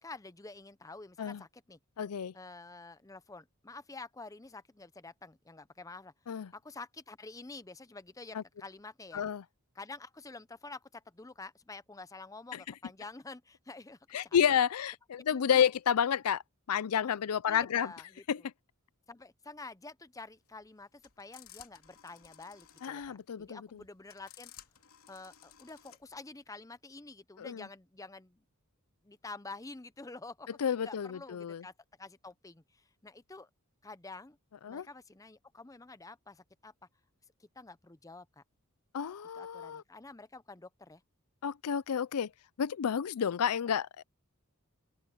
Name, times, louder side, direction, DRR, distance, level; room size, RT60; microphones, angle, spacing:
voice 1, 0.0-1.8 2.3-6.1 6.5-9.3 9.7-14.4 15.3-15.7 17.5-18.5 19.1-24.5 25.1-28.4 29.0-31.7 32.0-33.5 33.8-34.4 34.7-36.7 37.4-38.4 39.3-41.0, left 3 dB, 15° left, 0.6 m, -48 dB
voice 2, 2.0-2.3 6.3-6.5 8.3-8.4 9.1-9.4 14.1-16.4 16.7-17.9 18.3-18.4 22.8-23.6 27.4-27.6 30.6-31.6 34.6-34.9 38.9-39.8 41.4-42.3 42.6-44.0, left 8 dB, 85° left, 0.5 m, -30 dB
sound 1, 20.2-26.2, left 11 dB, 70° left, 3.3 m, -56 dB
open air
head